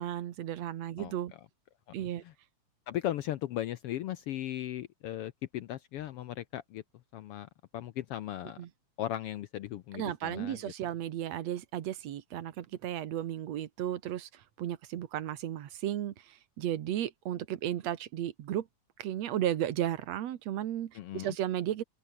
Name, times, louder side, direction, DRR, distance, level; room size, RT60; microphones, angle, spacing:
voice 1, 0.0-1.3 1.9-2.2 8.6-8.7 9.9-18.7 19.0-21.8, right 11 dB, 65° right, 2.4 m, -34 dB
voice 2, 2.9-6.8 7.1-8.6 9.0-10.6 20.9-21.3, left 13 dB, 75° left, 1.4 m, -37 dB
open air
omnidirectional pair, 3.4 m